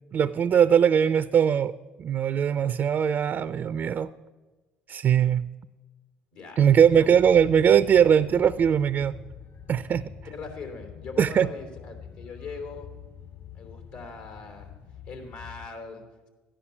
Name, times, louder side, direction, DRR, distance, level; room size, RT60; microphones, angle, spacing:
voice 1, 0.1-1.7 2.0-4.1 4.9-5.5 6.6-9.2 9.7-10.0 11.2-11.5, right 8 dB, 45° right, 0.4 m, -20 dB
voice 2, 6.3-7.2 10.2-12.9 13.5-14.7 15.1-16.3, left 4 dB, 75° left, 3.2 m, -41 dB
sound 1, 6.8-15.7, left 7 dB, 55° left, 3.0 m, -45 dB
13.5 x 10.0 x 7.1 m
supercardioid pair, 70°, 5 cm